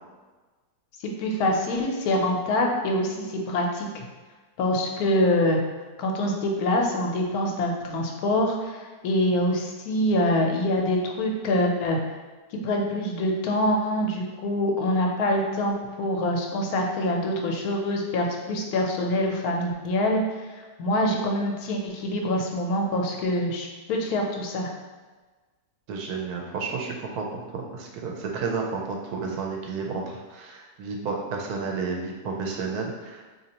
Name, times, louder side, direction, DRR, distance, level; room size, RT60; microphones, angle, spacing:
voice 1, 1.2-3.9 4.6-5.6 6.0-12.0 12.6-20.2 20.6-24.7, left 1 dB, 75° left, 1 dB, 1.1 m, -25 dB
voice 2, 25.9-33.3, right 4 dB, 80° right, 0 dB, 1.1 m, -31 dB
4.1 x 2.8 x 2.8 m, 1.3 s
omnidirectional pair, 1.6 m